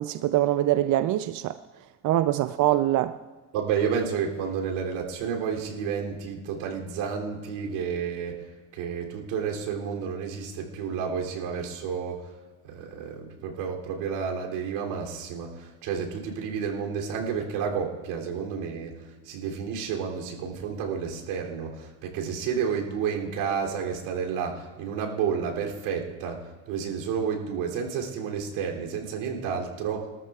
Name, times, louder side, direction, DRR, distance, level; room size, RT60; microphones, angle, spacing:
voice 1, 0.0-1.6 2.0-3.2, right 14 dB, 50° right, 0.5 m, -23 dB
voice 2, 3.5-8.5 8.7-12.3 12.6-30.1, right 6 dB, 75° right, 3.1 m, -31 dB
23.5 x 13.5 x 2.4 m
supercardioid pair, 95°, 41 cm